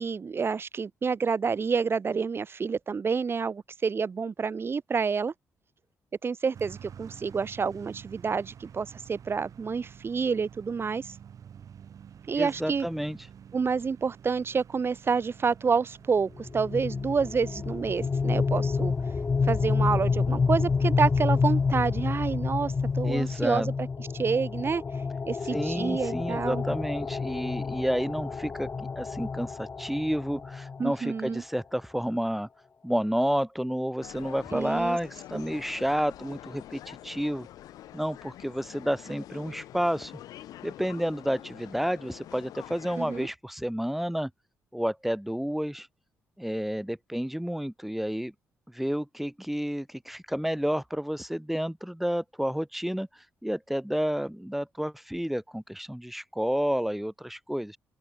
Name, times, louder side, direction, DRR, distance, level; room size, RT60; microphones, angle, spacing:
voice 1, 0.0-5.3 6.2-11.2 12.3-12.9 13.5-18.9 19.5-24.8 25.3-26.6 30.8-31.4 34.5-35.0 35.3-35.4 43.0-43.3, right 5 dB, 40° right, 0.5 m, -28 dB
sound 1, 6.5-23.7, right 8 dB, 60° right, 5.2 m, -50 dB
voice 2, 12.4-13.2 23.0-23.7 25.5-32.5 32.8-37.5 37.9-40.1 40.6-44.3 44.7-45.9 46.4-48.3 48.7-53.1 53.4-57.8, equal, 5° right, 1.9 m, -30 dB
sound 2, 16.4-31.3, left 5 dB, 35° left, 0.4 m, -29 dB
sound 3, 34.0-43.3, left 13 dB, 75° left, 4.5 m, -46 dB
open air
hypercardioid pair, 50°, 6 cm